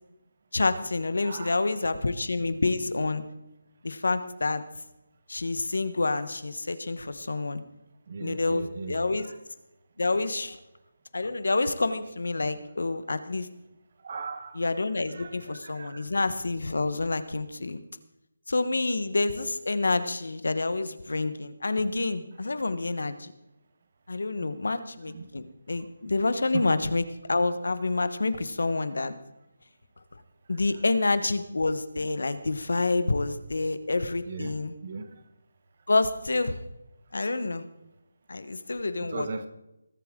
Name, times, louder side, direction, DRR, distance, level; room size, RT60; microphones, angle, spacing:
voice 1, 0.5-3.2 3.8-4.6 5.3-7.6 8.2-9.3 10.0-10.6 11.1-13.5 14.5-17.8 18.5-23.3 24.1-29.1 30.5-34.7 35.9-36.6 37.1-37.6 38.3-39.3, left 3 dB, 75° left, 12 dB, 1.1 m, -28 dB
voice 2, 1.2-1.6 8.1-8.9 9.2-9.3 14.0-14.6 15.1-16.1 25.1-25.3 26.5-26.6 34.3-34.5 34.8-35.0 39.1-39.5, right 4 dB, 35° right, 10 dB, 1.0 m, -37 dB
20.5 x 8.4 x 3.7 m, 0.90 s
hypercardioid pair, 175°, 0 cm